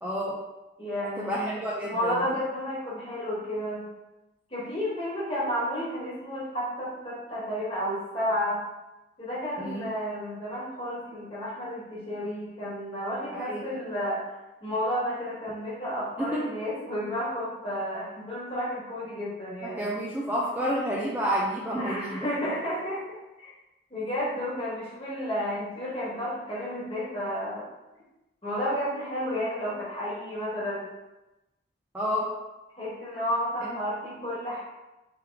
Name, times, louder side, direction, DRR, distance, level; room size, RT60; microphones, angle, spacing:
voice 1, 0.0-0.4 1.0-2.4 9.6-9.9 13.3-13.6 16.2-16.4 19.6-22.3 31.9-32.3, equal, 10° right, -5 dB, 0.4 m, -30 dB
voice 2, 0.8-3.9 4.5-8.6 9.2-14.2 14.6-19.9 21.8-23.0 23.4-23.5 23.9-27.7 28.4-30.9 32.7-34.6, equal, 30° left, -7 dB, 1.4 m, -32 dB
3.4 x 3.1 x 3.5 m, 1.0 s
head